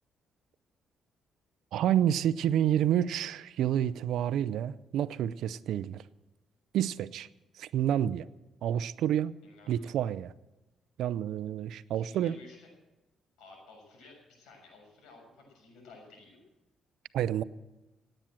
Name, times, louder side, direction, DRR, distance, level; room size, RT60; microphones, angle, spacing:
voice 1, 1.7-6.0 6.7-7.3 7.6-8.3 8.6-9.3 9.7-10.3 11.0-12.4 17.1-17.4, right 10 dB, 80° right, 17 dB, 0.6 m, -29 dB
voice 2, 9.4-9.9 11.8-12.7 13.4-16.4, left 3 dB, 85° left, 1 dB, 6.8 m, -54 dB
17.5 x 9.0 x 7.6 m, 1.0 s
cardioid pair, 90°, 0 cm